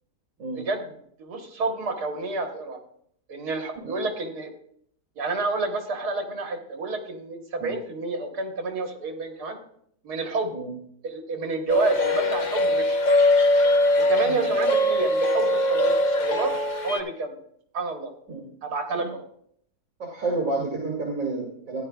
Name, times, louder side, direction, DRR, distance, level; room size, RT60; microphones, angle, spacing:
voice 1, 0.6-0.9 1.2-2.8 3.3-4.5 5.2-9.6 10.0-10.5 11.0-13.0 14.0-16.5 16.8-17.4 17.7-18.1 18.6-19.2, right 3 dB, 70° right, 4 dB, 1.8 m, -29 dB
sound 1, 11.7-17.0, left 1 dB, 65° left, 0.4 m, -21 dB
voice 2, 20.0-21.8, right 3 dB, 55° right, -2 dB, 2.3 m, -30 dB
14.5 x 10.5 x 2.3 m, 0.68 s
omnidirectional pair, 1.7 m